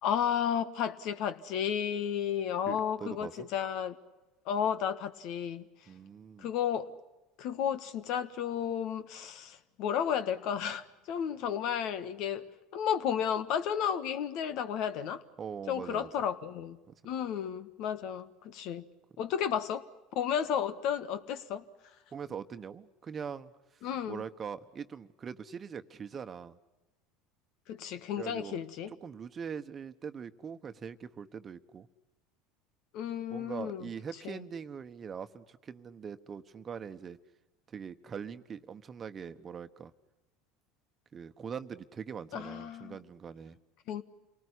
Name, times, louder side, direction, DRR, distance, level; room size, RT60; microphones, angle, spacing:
voice 1, 0.0-3.9 4.4-5.6 6.4-6.9 7.4-12.4 12.7-15.2 15.7-16.8 17.0-18.8 19.2-19.8 20.1-21.6 23.8-24.2 27.7-28.9 32.9-33.9 34.2-34.4 42.3-43.0 43.9-44.0, left 8 dB, 65° left, 12 dB, 1.6 m, -33 dB
voice 2, 2.7-3.5 5.9-6.5 15.4-16.1 16.9-17.0 22.1-26.6 28.2-31.9 33.3-37.2 37.7-39.9 41.1-43.6, right 7 dB, 30° right, 10 dB, 1.3 m, -42 dB
28.0 x 19.0 x 10.0 m, 1.1 s
supercardioid pair, 100°, 0 cm